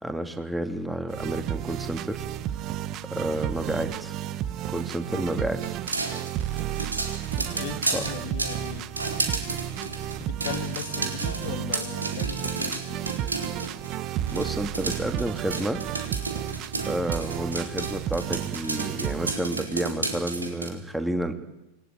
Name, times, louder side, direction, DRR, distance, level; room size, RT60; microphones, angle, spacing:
voice 1, 0.0-2.3 3.1-4.1 4.7-5.8 7.9-8.0 14.3-15.8 16.9-21.3, right 1 dB, 5° right, 7 dB, 2.7 m, -30 dB
sound 1, 1.1-19.3, right 11 dB, 35° right, 1.2 m, -32 dB
sound 2, 5.6-13.9 14.3-20.7, right 3 dB, 80° right, 4.3 m, -32 dB
voice 2, 6.5-6.9 7.4-8.9 9.8-13.2, left 9 dB, 50° left, 6 dB, 2.5 m, -38 dB
28.0 x 22.0 x 9.3 m, 0.96 s
figure-of-eight pair, 90°, 0 cm